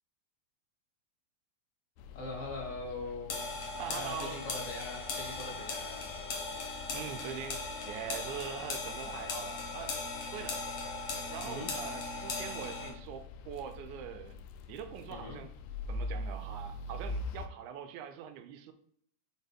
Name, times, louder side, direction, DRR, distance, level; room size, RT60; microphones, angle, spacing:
sound 1, 2.0-17.5, left 2 dB, 85° left, 2.0 m, -45 dB
voice 1, 2.1-3.5 3.9-6.1 11.4-11.7 15.1-15.4, left 2 dB, 30° left, 1.9 m, -42 dB
sound 2, 3.3-12.9, left 3 dB, 60° left, 2.0 m, -39 dB
voice 2, 3.8-4.4 6.9-10.0 10.3-10.6 11.3-14.4 14.7-15.5 15.9-18.7, right 8 dB, 90° right, 2.1 m, -43 dB
6.5 x 4.4 x 3.5 m
omnidirectional pair, 3.4 m